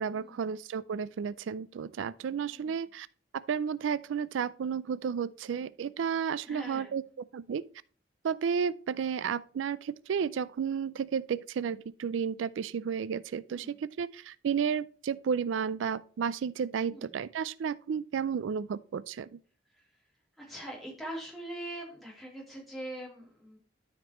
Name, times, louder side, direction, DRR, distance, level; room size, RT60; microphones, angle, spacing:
voice 1, 0.0-3.1 3.3-7.0 7.3-7.6 8.2-19.3, right 7 dB, 85° right, 0.4 m, -32 dB
voice 2, 2.5-2.9 6.5-7.0 13.5-13.8 16.9-17.2 19.7-20.0 20.4-23.6, right 1 dB, ahead, 3.1 m, -43 dB
12.5 x 5.1 x 2.9 m
head